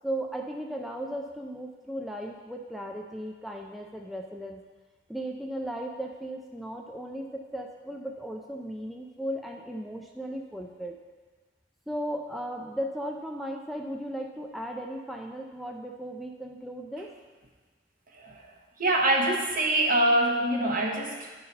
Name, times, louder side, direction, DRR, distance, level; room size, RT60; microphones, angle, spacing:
voice 1, 0.0-4.6 5.1-11.0 11.9-17.1, right 1 dB, ahead, 0 dB, 0.3 m, -36 dB
voice 2, 18.1-18.5 18.8-21.3, right 1 dB, 50° right, 0 dB, 1.0 m, -25 dB
10.5 x 3.9 x 4.1 m, 1.4 s
head